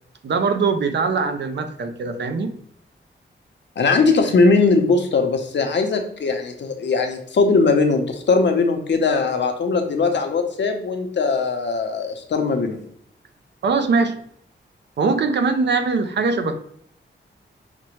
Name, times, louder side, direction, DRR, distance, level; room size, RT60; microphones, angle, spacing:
voice 1, 0.2-2.6 13.6-14.2 15.0-16.5, right 4 dB, 65° right, 8 dB, 0.5 m, -21 dB
voice 2, 3.8-12.8, left 4 dB, 65° left, 5 dB, 0.7 m, -20 dB
5.8 x 2.1 x 3.0 m, 0.66 s
wide cardioid pair, 95°, 20 cm